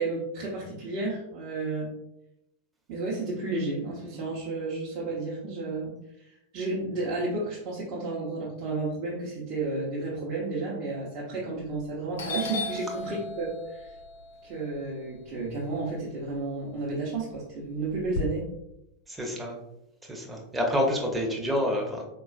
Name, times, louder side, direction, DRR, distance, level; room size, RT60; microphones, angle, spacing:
voice 1, 0.0-1.9 2.9-13.9 14.4-18.5, right 3 dB, 40° right, -6 dB, 0.7 m, -32 dB
Doorbell, 11.6-11.9 12.2-16.3 16.7-18.2, left 3 dB, 60° left, 0.5 m, -36 dB
voice 2, 19.1-19.6 20.1-22.0, left 1 dB, 10° right, -1 dB, 0.7 m, -28 dB
4.2 x 2.3 x 2.4 m, 0.85 s
figure-of-eight pair, 90°, 0 cm